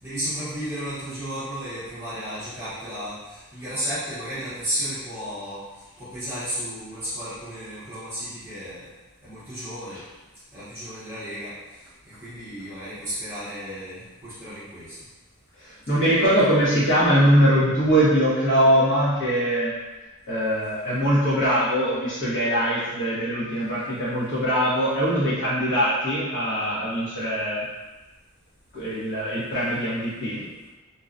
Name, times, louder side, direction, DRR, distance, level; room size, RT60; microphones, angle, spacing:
voice 1, 0.0-5.6 6.0-8.9 9.2-10.0 10.5-11.5 12.0-14.9, equal, 10° right, -13 dB, 0.7 m, -33 dB
voice 2, 15.6-19.7 20.3-27.6 28.7-30.4, equal, 55° left, -10 dB, 1.1 m, -22 dB
2.8 x 2.2 x 2.5 m, 1.1 s
head